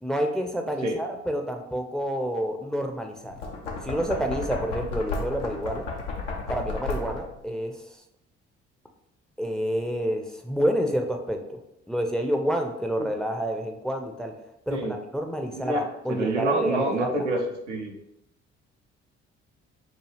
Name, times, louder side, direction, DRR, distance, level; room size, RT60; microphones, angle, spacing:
voice 1, 0.0-3.4 3.8-5.9 6.5-8.0 9.4-11.6 11.9-14.4 14.7-14.9 15.1-17.3, equal, ahead, 4 dB, 0.5 m, -28 dB
Knock, 3.3-7.4, left 3 dB, 80° left, 0.7 m, -33 dB
voice 2, 15.5-17.4 17.7-17.9, right 2 dB, 85° right, 1 dB, 0.5 m, -27 dB
4.7 x 2.3 x 3.2 m, 0.82 s
figure-of-eight pair, 45°, 35 cm